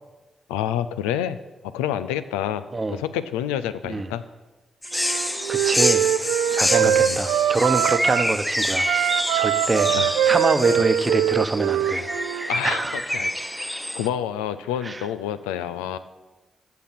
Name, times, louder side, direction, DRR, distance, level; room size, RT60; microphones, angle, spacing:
voice 1, 0.5-1.4 1.6-4.2 6.8-7.2 9.9-10.3 10.8-10.9 12.5-16.0, left 10 dB, 90° left, 12 dB, 0.5 m, -29 dB
sound 1, 4.8-11.1, left 1 dB, 20° left, 1.3 m, -28 dB
sound 2, 4.9-14.1, equal, 5° left, 0.7 m, -30 dB
Wind instrument woodwind instrument, 5.0-8.3 8.8-12.5, right 10 dB, 80° right, 0.5 m, -23 dB
voice 2, 5.5-6.0 6.5-9.9 10.2-13.0 14.8-15.0, right 3 dB, 35° right, 10 dB, 0.9 m, -25 dB
14.0 x 6.8 x 5.8 m, 1.2 s
hypercardioid pair, 40°, 0 cm